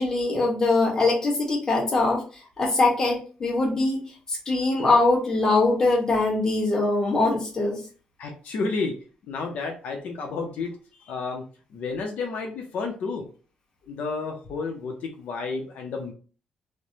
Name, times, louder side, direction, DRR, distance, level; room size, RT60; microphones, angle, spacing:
voice 1, 0.0-4.0 4.3-7.8, left 2 dB, 25° left, -2 dB, 1.1 m, -22 dB
voice 2, 8.2-8.9 9.3-10.7 11.0-11.4 11.7-13.3 13.9-16.1, left 4 dB, 70° left, 2 dB, 0.6 m, -31 dB
3.1 x 2.0 x 2.7 m, 0.38 s
cardioid pair, 145°, 3 cm